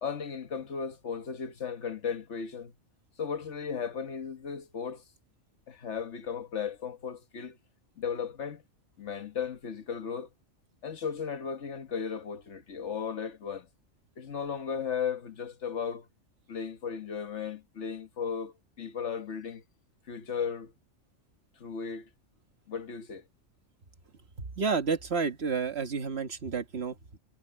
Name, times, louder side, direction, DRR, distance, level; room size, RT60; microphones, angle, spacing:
voice 1, 0.0-2.7 3.2-5.0 5.7-7.6 8.0-8.6 9.0-10.3 10.8-13.7 14.2-16.1 16.5-19.6 20.1-20.7 21.6-22.1 22.7-23.2, left 6 dB, 65° left, 1.5 m, -35 dB
voice 2, 24.4-27.2, right 5 dB, 55° right, 1.7 m, -31 dB
omnidirectional pair, 1.3 m